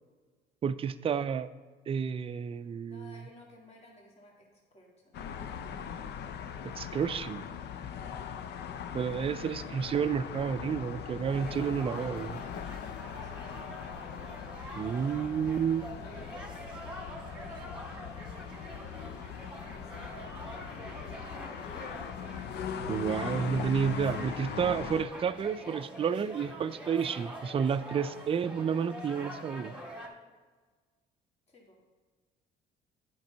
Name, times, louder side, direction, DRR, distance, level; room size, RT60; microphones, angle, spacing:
voice 1, 0.6-1.5 1.9-3.2 6.7-7.5 8.9-12.4 14.7-15.9 22.9-29.8, right 7 dB, 30° right, 11 dB, 0.4 m, -31 dB
voice 2, 2.9-5.2 8.1-8.5 9.5-9.6 13.0-13.6 16.0-18.0 19.7-20.5 21.1-21.5 21.8-21.9 31.5-31.8, left 1 dB, 35° left, -1 dB, 1.9 m, -55 dB
sound 1, 5.1-25.1, left 7 dB, 65° left, 0.6 m, -40 dB
sound 2, 11.3-30.1, equal, 5° right, 1.8 m, -45 dB
9.2 x 5.3 x 5.5 m, 1.4 s
cardioid pair, 105°, 19 cm